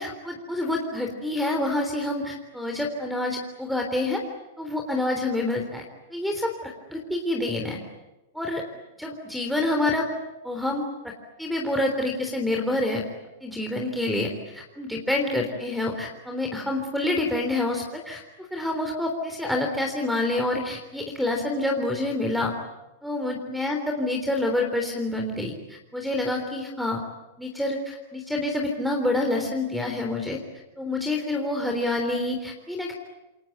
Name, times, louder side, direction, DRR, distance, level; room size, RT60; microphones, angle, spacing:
voice 1, 0.0-4.2 4.6-5.8 6.1-7.8 8.3-8.6 9.0-10.1 10.4-11.1 11.4-13.0 13.4-18.2 18.5-22.5 23.0-27.0 27.4-30.4 30.8-32.9, left 2 dB, ahead, 4 dB, 3.6 m, -27 dB
28.0 x 22.5 x 9.2 m, 1.0 s
hypercardioid pair, 130°, 0 cm